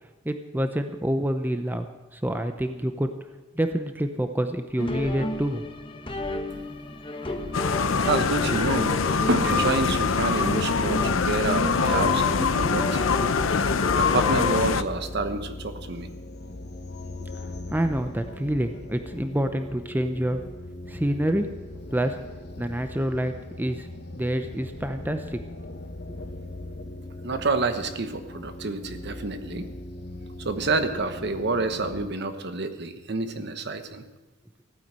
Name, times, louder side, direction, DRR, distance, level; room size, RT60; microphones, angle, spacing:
voice 1, 0.2-1.9 2.1-3.1 3.5-5.6 17.2-17.3 17.7-20.4 20.9-21.5 21.9-22.2 22.6-23.9 24.1-25.4, right 1 dB, 10° right, 7 dB, 0.6 m, -27 dB
sound 1, 4.8-14.6, left 1 dB, 25° left, 1.2 m, -32 dB
sound 2, 7.5-14.8, left 5 dB, 90° left, 0.7 m, -24 dB
voice 2, 8.1-13.1 13.9-16.1 27.2-29.7 30.4-34.1, right 3 dB, 60° right, 9 dB, 1.1 m, -28 dB
sound 3, 12.4-32.1, left 1 dB, 55° left, 1.0 m, -39 dB
15.5 x 9.6 x 7.5 m, 1.2 s
head